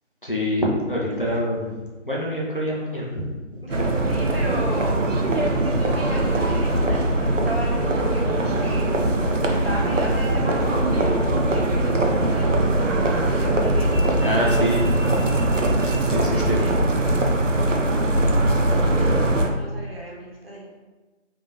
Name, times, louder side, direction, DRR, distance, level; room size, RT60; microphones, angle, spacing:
voice 1, 0.2-1.7 2.1-3.3 14.2-14.8 15.1-15.3 16.1-16.8, equal, 45° left, -4 dB, 0.7 m, -25 dB
voice 2, 3.6-5.0 5.6-8.9 9.5-14.0 15.8-16.8 17.7-18.6 18.9-20.8, equal, 50° right, -4 dB, 1.2 m, -35 dB
sound 1, 3.7-19.5, right 1 dB, 85° right, 0.7 m, -21 dB
3.6 x 3.3 x 2.6 m, 1.2 s
figure-of-eight pair, 175°, 37 cm